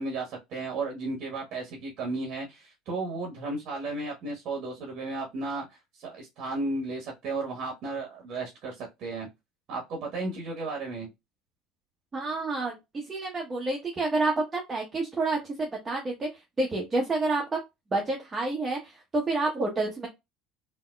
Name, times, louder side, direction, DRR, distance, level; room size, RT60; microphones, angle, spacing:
voice 1, 0.0-5.7 5.9-9.3 9.7-11.1, right 3 dB, 55° right, 1.1 m, -34 dB
voice 2, 12.1-16.3 16.6-17.4 17.9-20.1, right 2 dB, 25° right, 1.0 m, -29 dB
3.5 x 2.8 x 2.2 m
hypercardioid pair, 70°, 0 cm